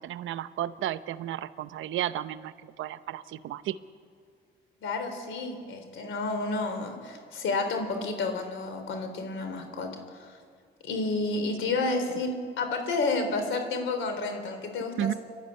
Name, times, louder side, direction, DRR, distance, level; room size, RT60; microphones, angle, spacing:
voice 1, 0.0-3.8 11.7-11.8 15.0-15.1, right 12 dB, 80° right, 14 dB, 0.8 m, -33 dB
voice 2, 4.8-10.4 10.8-15.2, left 3 dB, 80° left, 6 dB, 3.8 m, -30 dB
30.0 x 12.0 x 9.6 m, 2.1 s
cardioid pair, 90°, 20 cm